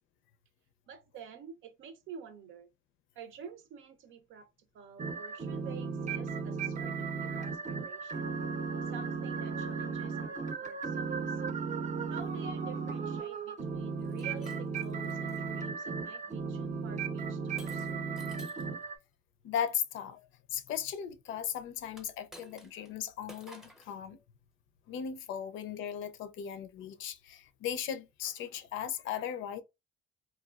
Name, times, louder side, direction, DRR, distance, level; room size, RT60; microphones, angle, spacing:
voice 1, 0.9-2.7 3.2-4.5 4.7-8.4 8.8-11.4 12.1-18.0, right 7 dB, 80° right, 0.6 m, -50 dB
sound 1, 5.0-19.0, right 5 dB, 40° right, 0.5 m, -36 dB
Shatter, 14.0-15.4 16.0-16.4 17.6-18.7 21.9-22.9 23.3-23.9, equal, ahead, 0.7 m, -53 dB
voice 2, 19.4-20.2 20.5-24.2 24.9-29.6, left 9 dB, 90° left, 0.5 m, -37 dB
3.1 x 2.3 x 2.3 m
cardioid pair, 90°, 20 cm